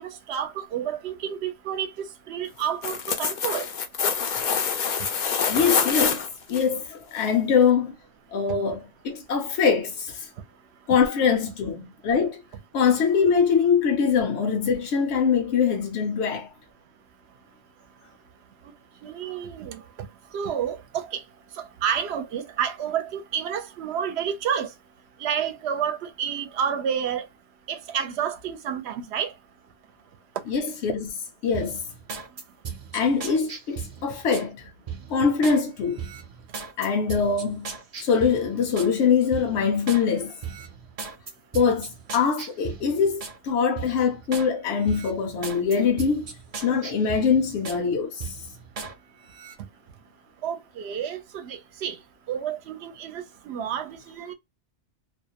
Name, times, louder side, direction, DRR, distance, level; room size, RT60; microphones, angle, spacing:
voice 1, 0.0-3.7 8.5-8.6 19.0-19.8 20.3-21.2 21.6-24.7 25.2-27.3 27.7-29.3 50.4-52.0 52.3-54.3, right 8 dB, 70° right, 0.8 m, -30 dB
sound 1, 2.6-6.6 7.2-7.3, left 6 dB, 60° left, 0.5 m, -25 dB
voice 2, 5.5-6.2 6.5-7.9 8.3-10.3 10.9-12.4 12.7-16.5 30.5-31.8 32.9-34.7 35.1-36.1 36.8-37.7 38.0-40.3 41.5-46.2 46.6-48.4, left 6 dB, 75° left, 0.9 m, -23 dB
sound 2, 31.5-34.5 34.9-35.6 36.0-38.9 39.3-40.0 40.4-43.4 43.8-44.5 44.8-47.8 48.2-48.9 49.3-49.5, right 6 dB, 45° right, 0.5 m, -37 dB
2.5 x 2.1 x 2.7 m
omnidirectional pair, 1.2 m